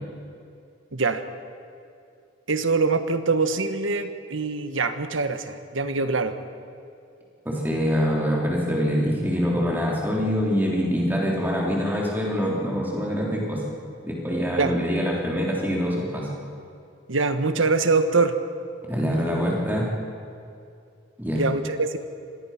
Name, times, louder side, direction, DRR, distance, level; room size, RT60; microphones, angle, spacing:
voice 1, 0.9-1.2 2.5-6.4 14.6-14.7 17.1-18.4 21.3-22.0, right 4 dB, 85° right, 9 dB, 1.3 m, -23 dB
voice 2, 7.5-13.6 14.0-16.3 18.9-19.9 21.2-21.4, equal, 10° right, -3 dB, 3.7 m, -24 dB
26.0 x 19.0 x 5.9 m, 2.5 s
head